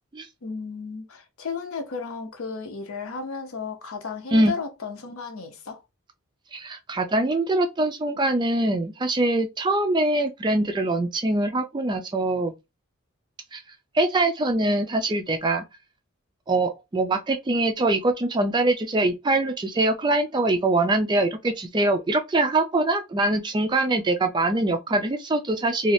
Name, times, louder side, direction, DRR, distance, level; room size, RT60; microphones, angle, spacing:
voice 1, 0.4-5.8, left 4 dB, 70° left, 0.7 m, -34 dB
voice 2, 6.5-12.5 13.5-13.6 13.9-15.6 16.5-25.9, right 2 dB, 20° right, 0.3 m, -23 dB
2.6 x 2.3 x 3.2 m
head